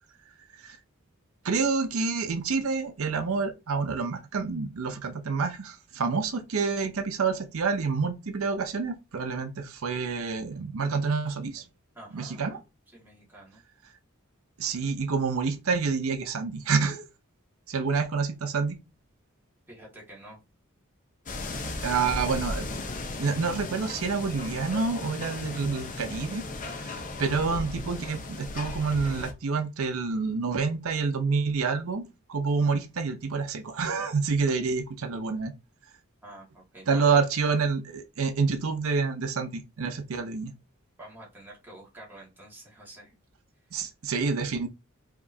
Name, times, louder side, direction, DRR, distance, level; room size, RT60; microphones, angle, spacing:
voice 1, 1.4-11.6 12.1-12.6 14.6-17.0 17.7-18.8 21.8-22.7 23.2-26.4 26.8-26.9 27.2-35.5 36.9-40.5 43.7-44.7, right 4 dB, 90° right, 0.6 m, -28 dB
voice 2, 11.9-12.6 12.9-13.6 19.7-20.4 21.5-22.2 36.2-37.1 41.0-43.1 44.0-44.1, right 1 dB, 10° right, 1.7 m, -48 dB
sound 1, 21.3-29.3, left 2 dB, 40° left, 0.7 m, -36 dB
5.0 x 3.0 x 2.7 m
head